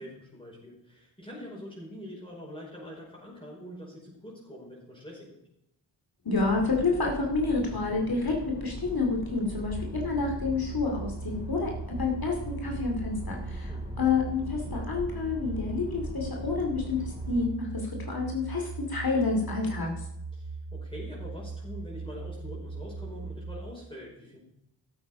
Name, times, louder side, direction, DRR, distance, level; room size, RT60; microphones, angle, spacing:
voice 1, 0.0-5.4 13.7-14.1 20.3-24.4, equal, 10° left, -5 dB, 5.3 m, -44 dB
voice 2, 6.2-13.7 14.0-19.9, left 4 dB, 50° left, 0 dB, 2.6 m, -29 dB
sound 1, 6.3-17.5, equal, 10° right, 5.8 m, -41 dB
sound 2, 9.7-23.7, right 4 dB, 50° right, 1.3 m, -39 dB
13.5 x 8.0 x 4.9 m, 0.79 s
cardioid pair, 55°, 45 cm